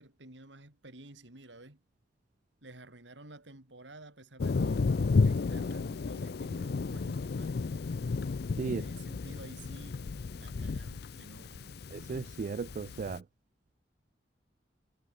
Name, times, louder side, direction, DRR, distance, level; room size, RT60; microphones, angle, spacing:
voice 1, 0.0-1.8 2.6-4.9 5.2-7.7 8.6-10.0 10.3-11.8, right 2 dB, 80° right, 3.5 m, -52 dB
Thunder, 4.4-13.1, left 4 dB, 60° left, 0.5 m, -32 dB
voice 2, 11.9-13.2, right 5 dB, 45° right, 0.3 m, -35 dB
head